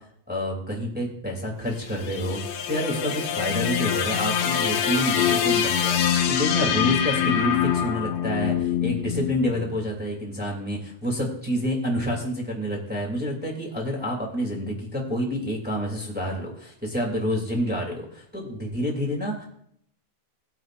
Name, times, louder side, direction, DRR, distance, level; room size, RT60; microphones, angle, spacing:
voice 1, 0.3-19.4, equal, 5° right, -2 dB, 1.9 m, -28 dB
sound 1, 1.7-10.0, left 9 dB, 80° left, 2.8 m, -25 dB
19.5 x 9.1 x 2.6 m, 0.69 s
omnidirectional pair, 4.6 m